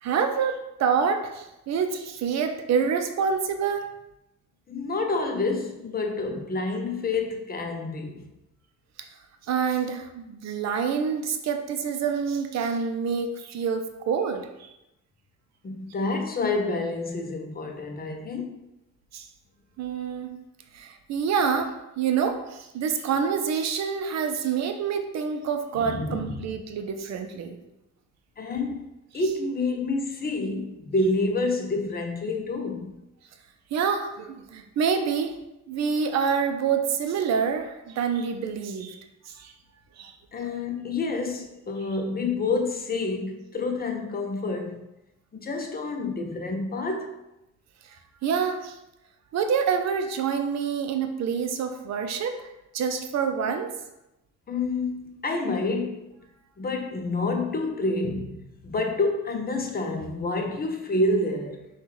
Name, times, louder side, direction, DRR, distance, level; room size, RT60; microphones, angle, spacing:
voice 1, 0.0-3.9 9.4-14.7 19.1-19.3 19.8-20.4 20.7-27.6 33.7-35.4 35.7-39.5 40.0-40.5 47.8-48.0 48.2-48.8 49.3-53.7, right 6 dB, 60° right, 0.5 m, -27 dB
voice 2, 4.7-8.3 15.6-18.6 25.8-26.4 28.4-32.9 40.3-44.8 45.4-47.1 54.5-56.1 56.6-61.6, left 3 dB, 30° left, 0.6 m, -28 dB
5.3 x 2.3 x 3.1 m
cardioid pair, 90°, 30 cm